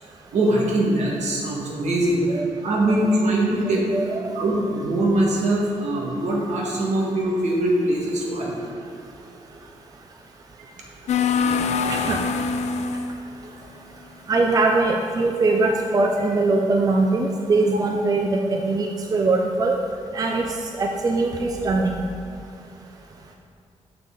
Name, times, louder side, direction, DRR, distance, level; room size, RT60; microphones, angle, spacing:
voice 1, 0.3-2.2 2.6-3.9 4.3-8.6, right 1 dB, 75° right, -3 dB, 1.6 m, -22 dB
voice 2, 3.9-4.4 11.9-12.2 14.3-19.7 20.1-20.4 20.8-22.0, right 3 dB, 30° right, 2 dB, 0.5 m, -21 dB
sound 1, 11.1-13.1, left 5 dB, 70° left, 0.4 m, -23 dB
6.6 x 6.0 x 3.8 m, 2.5 s
cardioid pair, 120°, 12 cm